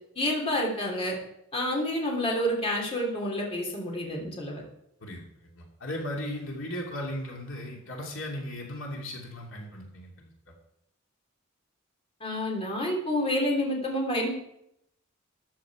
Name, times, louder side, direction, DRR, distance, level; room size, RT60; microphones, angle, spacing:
voice 1, 0.1-1.2 1.5-4.6 12.2-14.4, left 1 dB, 30° left, -1 dB, 3.2 m, -28 dB
voice 2, 5.0-10.3, left 1 dB, 75° left, 0 dB, 2.5 m, -37 dB
14.0 x 9.3 x 4.8 m, 0.77 s
head